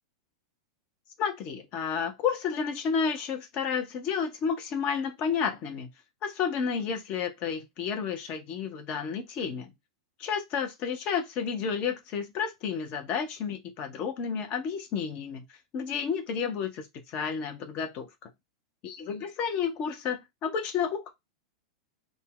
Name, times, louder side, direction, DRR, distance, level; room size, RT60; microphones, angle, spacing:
voice 1, 1.2-5.9 6.2-9.7 10.2-15.4 15.7-18.1 18.8-21.1, left 6 dB, 40° left, 0.8 m, -31 dB
2.6 x 2.1 x 3.8 m
hypercardioid pair, 95°, 3 cm